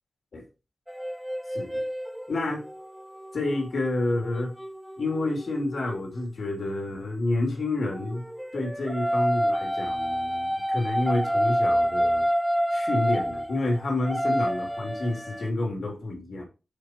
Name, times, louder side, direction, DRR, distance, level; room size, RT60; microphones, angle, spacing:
sound 1, 0.9-6.0 8.0-15.5, equal, 5° right, 0.6 m, -28 dB
voice 1, 1.5-1.8 2.3-2.7 3.3-4.5 5.0-8.2 8.5-12.2 12.7-16.5, left 2 dB, 90° left, 0 dB, 2.9 m, -29 dB
12.5 x 4.8 x 3.0 m, 0.29 s
wide cardioid pair, 110°, 0 cm